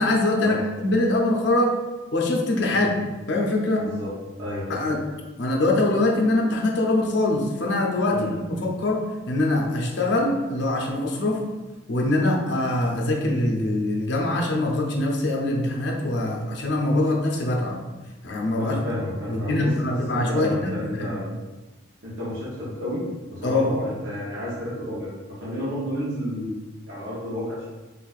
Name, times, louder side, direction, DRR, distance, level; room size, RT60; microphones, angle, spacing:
voice 1, 0.0-1.8 2.1-3.0 3.3-3.9 4.7-5.0 5.4-11.4 11.9-17.8 18.2-18.8 19.3-21.2 23.4-23.7, left 2 dB, 60° left, 0 dB, 0.5 m, -23 dB
voice 2, 3.8-4.8 8.1-8.3 18.6-21.3 22.0-23.1 23.3-25.1 25.4-27.6, left 1 dB, 65° right, -9 dB, 0.8 m, -31 dB
4.1 x 2.5 x 2.4 m, 1.2 s
head